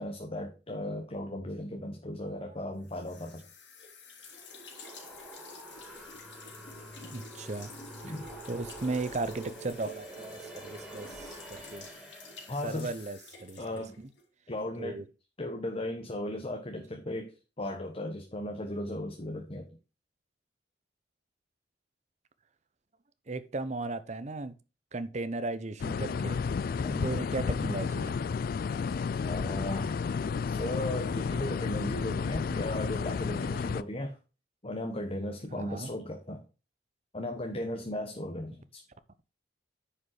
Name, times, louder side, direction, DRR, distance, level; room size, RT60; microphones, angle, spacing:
voice 1, 0.0-3.5 8.0-8.3 12.5-12.9 13.6-13.9 14.5-15.0 15.4-19.7 26.8-27.1 29.2-30.0 30.5-34.2 34.6-36.4 37.1-38.8, left 1 dB, 30° left, 1.1 m, -36 dB
sound 1, 2.8-14.3, left 4 dB, 80° left, 3.4 m, -50 dB
sound 2, 4.4-12.7, right 2 dB, 5° right, 3.4 m, -47 dB
voice 2, 7.0-7.7 8.1-8.2 8.4-11.9 12.6-13.6 14.0-14.1 14.8-15.0 23.3-24.5 24.9-26.4 27.0-28.2 35.5-35.9, right 3 dB, 40° right, 0.7 m, -36 dB
sound 3, 25.8-33.8, left 5 dB, 50° left, 0.3 m, -32 dB
9.8 x 5.3 x 4.8 m
head